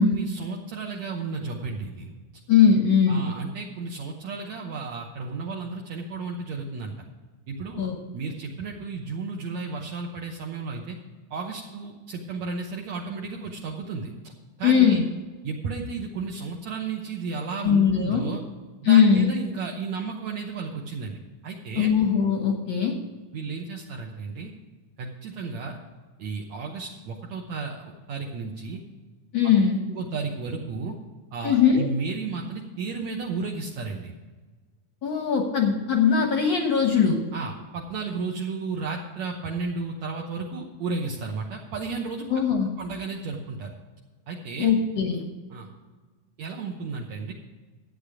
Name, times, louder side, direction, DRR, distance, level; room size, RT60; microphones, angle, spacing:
voice 1, 0.0-2.1 3.1-7.0 7.5-7.8 8.1-11.0 11.3-14.1 14.6-15.0 15.4-18.4 18.8-21.2 21.4-21.9 23.3-24.5 25.0-25.8 26.2-28.8 29.4-29.6 29.9-31.0 31.3-34.1 37.3-42.3 42.8-43.7 44.3-44.7 45.5-45.7 46.4-47.3, right 4 dB, 65° right, 0 dB, 2.0 m, -33 dB
voice 2, 2.5-3.2 7.8-7.9 14.6-15.0 17.6-18.3 18.8-19.3 21.8-23.0 29.3-29.8 31.4-31.9 35.0-37.2 42.3-42.7 44.6-45.2, left 7 dB, 60° left, 3 dB, 1.2 m, -20 dB
12.0 x 8.6 x 4.9 m, 1.3 s
omnidirectional pair, 3.7 m